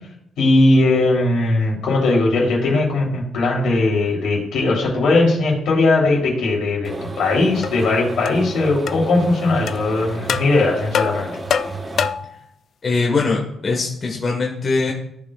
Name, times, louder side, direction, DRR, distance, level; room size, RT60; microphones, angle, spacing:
voice 1, 0.4-11.3, left 2 dB, 75° left, -3 dB, 3.6 m, -18 dB
sound 1, 6.8-12.1, right 2 dB, 30° right, 0.9 m, -32 dB
sound 2, 7.6-7.7 8.3-8.4 8.9-9.0 9.7-9.8 10.3-10.5 10.9-12.4, left 7 dB, 60° left, 0.4 m, -23 dB
voice 2, 12.8-14.9, left 3 dB, 40° left, -2 dB, 1.6 m, -21 dB
14.5 x 5.0 x 2.5 m, 0.72 s
cardioid pair, 90°, 0 cm